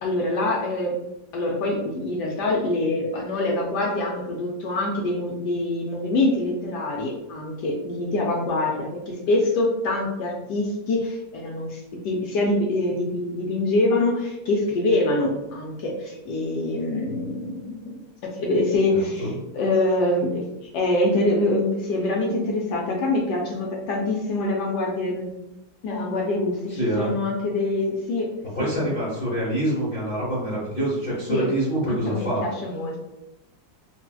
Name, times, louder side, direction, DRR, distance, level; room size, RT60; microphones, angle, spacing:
voice 1, 0.0-1.0 1.3-18.0 18.4-19.3 19.5-20.5 20.7-25.3 25.8-28.3 28.6-28.7 31.3-31.5 31.9-33.0, left 2 dB, 70° left, -1 dB, 1.1 m, -25 dB
voice 2, 18.9-19.3 26.8-27.2 28.5-32.4, right 1 dB, 50° left, -8 dB, 0.6 m, -26 dB
4.0 x 2.1 x 2.2 m, 0.91 s
omnidirectional pair, 2.1 m